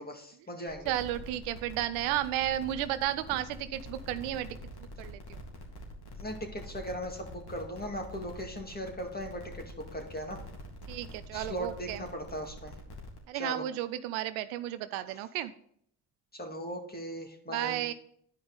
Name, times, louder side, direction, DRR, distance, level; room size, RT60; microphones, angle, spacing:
voice 1, 0.0-0.9 6.2-10.4 11.3-12.7 13.3-13.6 15.1-15.2 16.3-17.9, equal, 20° left, 2 dB, 2.1 m, -38 dB
sound 1, 0.7-13.2, left 1 dB, 55° left, 2.3 m, -46 dB
voice 2, 0.9-4.6 5.0-5.4 10.9-12.0 13.3-15.5 17.5-17.9, right 13 dB, 85° right, 13 dB, 0.6 m, -33 dB
10.5 x 5.1 x 3.9 m, 0.66 s
hypercardioid pair, 50°, 48 cm